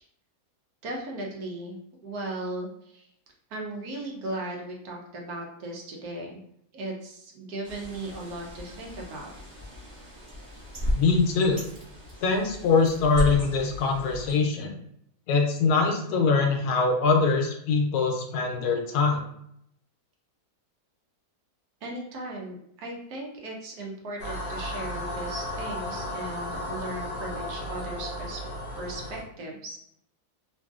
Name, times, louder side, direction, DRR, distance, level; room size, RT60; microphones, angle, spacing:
voice 1, 0.8-1.8 2.0-3.1 3.5-6.4 6.7-9.3 21.8-28.4 28.8-29.8, right 1 dB, 70° right, -1 dB, 1.1 m, -37 dB
Bird, 7.6-14.3, left 1 dB, 35° right, 0.9 m, -35 dB
voice 2, 10.9-11.6 12.2-14.7 15.3-19.2, left 4 dB, 75° left, 2 dB, 1.1 m, -23 dB
sound 1, 24.2-29.2, left 1 dB, 55° left, 0.7 m, -34 dB
3.0 x 2.6 x 2.3 m, 0.73 s
omnidirectional pair, 1.7 m